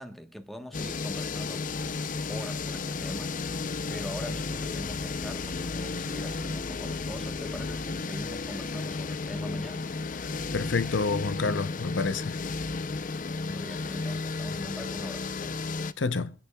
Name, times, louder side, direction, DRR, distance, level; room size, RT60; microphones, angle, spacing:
voice 1, 0.0-2.0 2.3-9.8 13.4-15.7, equal, ahead, 1.2 m, -42 dB
sound 1, 0.7-15.9, left 4 dB, 45° left, 0.6 m, -33 dB
voice 2, 10.5-12.4 16.0-16.3, left 4 dB, 85° left, 0.7 m, -28 dB
23.5 x 10.5 x 2.3 m
head